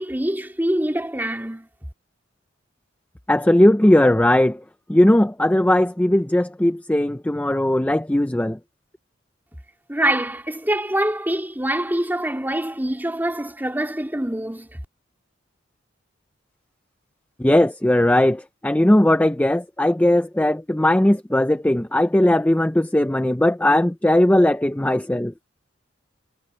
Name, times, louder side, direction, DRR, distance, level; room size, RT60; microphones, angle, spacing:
voice 1, 0.0-1.7 9.9-14.7, right 1 dB, 10° right, 2.6 m, -24 dB
voice 2, 3.3-4.6 4.9-8.6 17.4-25.3, left 1 dB, 10° left, 0.5 m, -18 dB
head